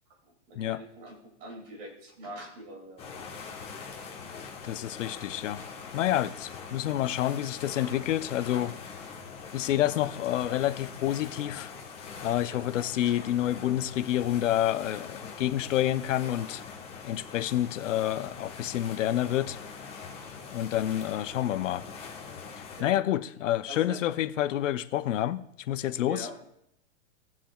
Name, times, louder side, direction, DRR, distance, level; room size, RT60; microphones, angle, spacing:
voice 1, 0.5-3.2 4.4-4.5 12.5-12.7 22.8-22.9 23.7-24.0 26.1-26.3, right 1 dB, 25° right, 2.7 m, -43 dB
sound 1, 3.0-22.8, left 5 dB, 15° left, 1.1 m, -43 dB
voice 2, 4.6-5.6 5.9-8.7 9.5-11.7 12.2-16.6 17.0-19.6 20.5-21.9 22.6-26.3, left 12 dB, 70° left, 0.7 m, -28 dB
18.0 x 7.3 x 2.4 m
supercardioid pair, 170°, 39 cm